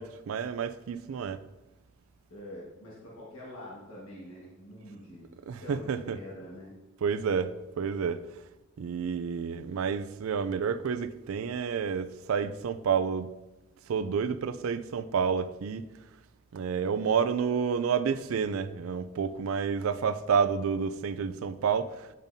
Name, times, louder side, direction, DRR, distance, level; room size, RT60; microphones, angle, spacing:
voice 1, 0.0-1.4 5.5-6.2 7.0-8.2 8.8-13.3 13.9-15.8 16.5-21.9, right 6 dB, 80° right, 0.4 m, -29 dB
voice 2, 2.3-6.7, left 1 dB, 90° left, 1.5 m, -45 dB
8.8 x 5.2 x 2.7 m
head